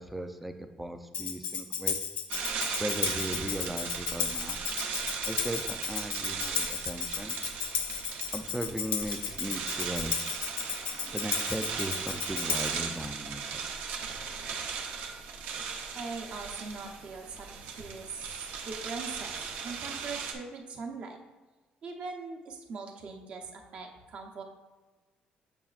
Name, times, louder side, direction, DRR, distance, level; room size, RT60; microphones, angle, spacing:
voice 1, 0.0-2.0 2.8-4.6 5.3-7.4 8.3-10.1 11.1-13.5, right 1 dB, 5° right, 7 dB, 0.3 m, -37 dB
Tambourine, 1.1-12.9, left 7 dB, 50° left, 0.5 m, -34 dB
sound 1, 2.3-20.3, right 6 dB, 75° right, 0.7 m, -37 dB
voice 2, 15.9-21.2 21.8-24.4, right 4 dB, 40° right, 2 dB, 0.8 m, -41 dB
7.0 x 5.8 x 2.4 m, 1.3 s
cardioid pair, 180°, 3 cm